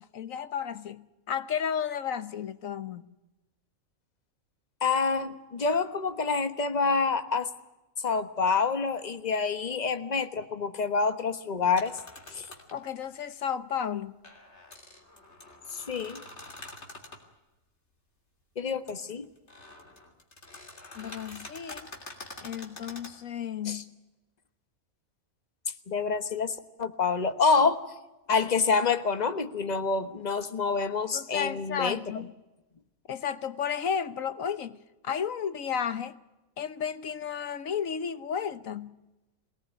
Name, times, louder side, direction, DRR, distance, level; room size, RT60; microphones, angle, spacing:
voice 1, 0.0-3.1 12.7-14.2 21.0-21.9 22.4-23.8 31.1-32.3 33.1-34.8 35.0-36.2 36.6-39.0, left 8 dB, 75° left, 1.4 m, -33 dB
voice 2, 4.8-7.5 8.0-11.9 12.3-12.4 15.7-16.2 18.6-19.2 23.7-23.8 25.9-27.8 28.3-32.0, left 4 dB, 30° left, 1.3 m, -27 dB
sound 1, 11.7-12.8 14.2-17.2 18.9-19.0 19.4-23.2, left 2 dB, 55° left, 3.3 m, -46 dB
23.5 x 18.5 x 9.3 m
omnidirectional pair, 1.4 m